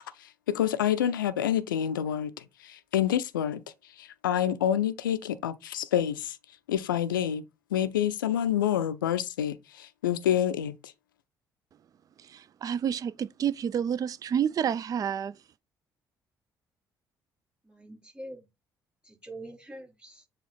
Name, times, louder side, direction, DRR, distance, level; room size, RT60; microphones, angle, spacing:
voice 1, 0.5-3.6 4.0-6.4 6.7-7.4 7.7-10.8, left 10 dB, 75° left, 0.5 m, -27 dB
voice 2, 12.2-15.4, right 8 dB, 35° right, 0.4 m, -29 dB
voice 3, 17.7-18.5 19.0-20.2, right 1 dB, 10° right, 3.7 m, -44 dB
7.3 x 3.1 x 4.2 m
figure-of-eight pair, 45°, 11 cm